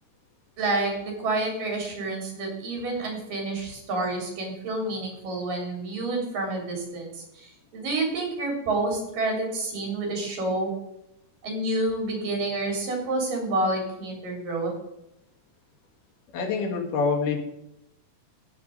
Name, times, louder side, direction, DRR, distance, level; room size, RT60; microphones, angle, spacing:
voice 1, 0.6-10.7 11.4-14.7, right 2 dB, 85° right, 1 dB, 5.2 m, -29 dB
voice 2, 16.3-17.4, left 4 dB, 75° left, 2 dB, 3.3 m, -26 dB
15.0 x 5.1 x 6.6 m, 0.84 s
omnidirectional pair, 3.8 m